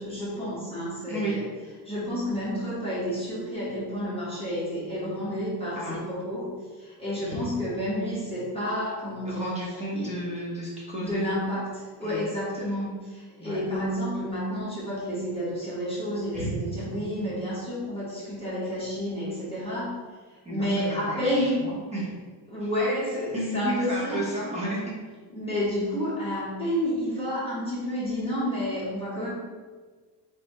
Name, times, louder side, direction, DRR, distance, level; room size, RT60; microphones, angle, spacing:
voice 1, 0.0-1.5 1.8-9.4 9.9-10.2 11.0-19.9 20.3-21.6 22.5-24.3 25.3-29.3, equal, 10° left, -9 dB, 1.1 m, -30 dB
voice 2, 9.3-11.2 12.0-12.2 13.4-13.6 16.3-16.5 16.9-17.0 20.4-20.7 21.1-22.1 23.3-24.8, right 1 dB, 15° right, -6 dB, 0.9 m, -32 dB
3.5 x 3.3 x 4.1 m, 1.4 s
cardioid pair, 155°, 45 cm